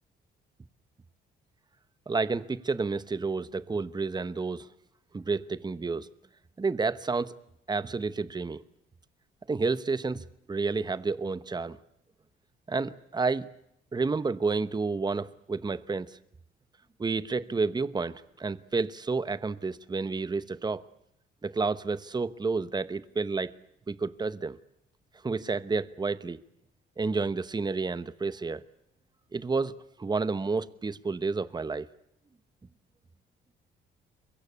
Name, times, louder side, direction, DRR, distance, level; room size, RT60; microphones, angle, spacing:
voice 1, 2.1-4.7 5.1-6.1 6.6-7.3 7.7-8.6 9.5-11.8 12.7-13.5 13.9-16.2 17.0-20.8 21.4-23.5 23.9-24.6 25.2-26.4 27.0-28.6 29.3-31.9, right 4 dB, 20° right, 14 dB, 1.0 m, -30 dB
23.5 x 22.5 x 8.5 m, 0.76 s
cardioid pair, 90°, 20 cm